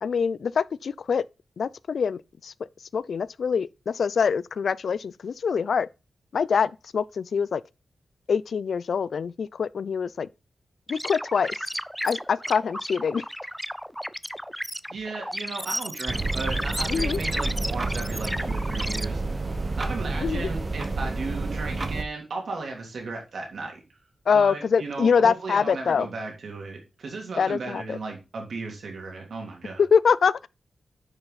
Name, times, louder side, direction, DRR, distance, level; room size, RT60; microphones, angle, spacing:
voice 1, 0.0-1.2 1.6-2.5 2.9-5.9 6.3-7.6 8.3-10.3 10.9-11.7 12.0-13.2 16.9-17.2 20.2-20.5 24.3-26.1 27.4-28.0 29.8-30.5, left 6 dB, 75° left, 0.3 m, -24 dB
sound 1, 10.9-19.1, equal, ahead, 0.3 m, -33 dB
voice 2, 14.9-19.2 19.8-23.8 24.3-29.8, right 3 dB, 75° right, 3.1 m, -35 dB
sound 2, 16.1-22.0, right 3 dB, 35° right, 1.0 m, -29 dB
9.9 x 5.6 x 4.0 m
wide cardioid pair, 110°, 0 cm